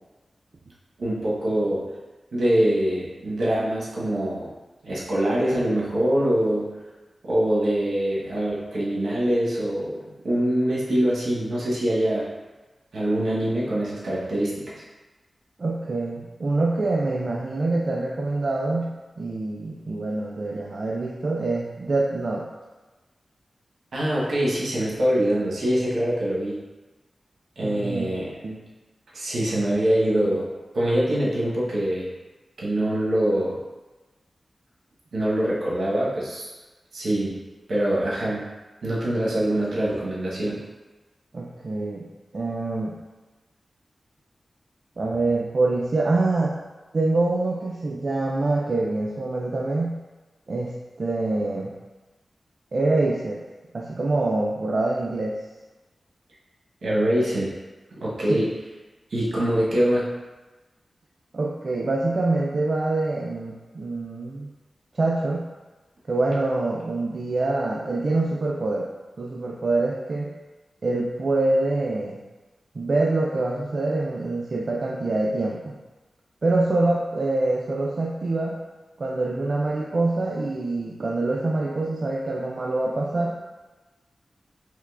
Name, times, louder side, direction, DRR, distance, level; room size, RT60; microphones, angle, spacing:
voice 1, 1.0-1.9 2.3-4.5 4.8-6.7 7.2-12.3 12.9-14.8 23.9-26.6 27.6-28.4 29.1-30.5 30.7-32.1 32.6-33.6 35.1-36.4 36.9-37.4 37.7-38.4 38.8-40.6 56.8-57.5 58.0-58.5 59.1-60.1, right 1 dB, 80° right, -6 dB, 0.9 m, -24 dB
voice 2, 15.6-22.5 27.6-28.1 28.4-28.6 41.3-42.0 42.3-43.0 45.0-46.6 46.9-50.0 50.5-51.7 52.7-53.4 53.7-55.4 58.3-58.5 61.3-64.5 64.9-65.5 66.1-68.9 69.2-70.3 70.8-72.2 72.7-75.7 76.4-78.6 79.0-83.4, right 2 dB, 55° right, -3 dB, 0.3 m, -25 dB
3.5 x 2.9 x 2.3 m, 1.2 s
wide cardioid pair, 70°, 0 cm